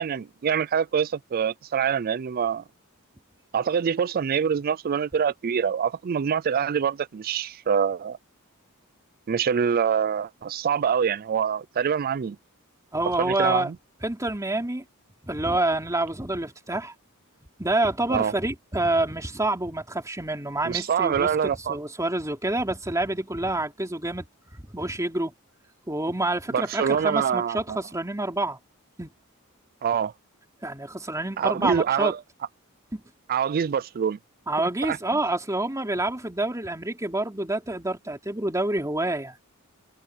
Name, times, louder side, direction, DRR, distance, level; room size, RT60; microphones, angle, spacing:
voice 1, 0.0-2.6 3.5-8.2 9.3-12.4 13.2-13.8 18.1-18.3 20.6-21.8 26.5-27.8 29.8-30.1 31.4-32.2 33.3-34.2 34.8-35.0, right 7 dB, 45° right, 0.4 m, -25 dB
voice 2, 12.9-13.7 14.0-14.8 15.2-16.9 17.6-24.3 24.6-25.3 25.9-28.6 29.0-29.1 30.6-32.1 32.9-33.0 34.5-39.4, right 2 dB, 15° right, 3.1 m, -27 dB
head